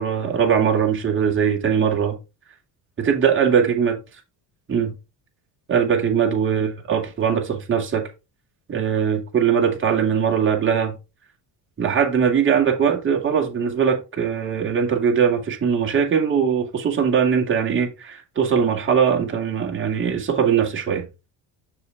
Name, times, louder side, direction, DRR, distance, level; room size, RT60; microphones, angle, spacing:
voice 1, 0.0-2.2 3.0-4.0 4.7-4.9 5.7-8.1 8.7-10.9 11.8-21.0, right 7 dB, 30° right, 2.3 m, -21 dB
7.3 x 6.8 x 3.5 m
cardioid pair, 145°, 43 cm